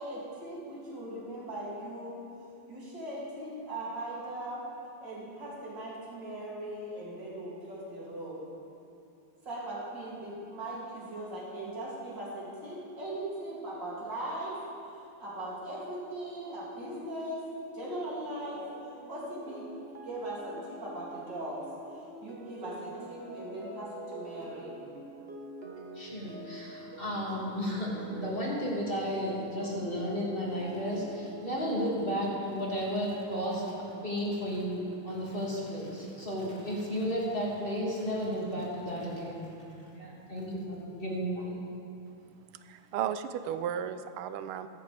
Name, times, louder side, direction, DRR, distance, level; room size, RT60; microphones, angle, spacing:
voice 1, 0.0-2.2 2.7-4.6 5.0-8.4 9.5-14.6 15.2-17.4 17.7-18.6 19.1-19.7 20.0-21.6 21.9-24.8, right 1 dB, 55° right, -7 dB, 3.5 m, -39 dB
sound 1, 17.8-31.9, right 1 dB, 35° right, 1.1 m, -46 dB
voice 2, 25.9-39.5 39.9-41.6, equal, 25° left, -5 dB, 2.4 m, -33 dB
voice 3, 42.6-44.7, right 9 dB, 85° right, 11 dB, 1.5 m, -34 dB
16.0 x 13.5 x 3.4 m, 2.6 s
omnidirectional pair, 2.4 m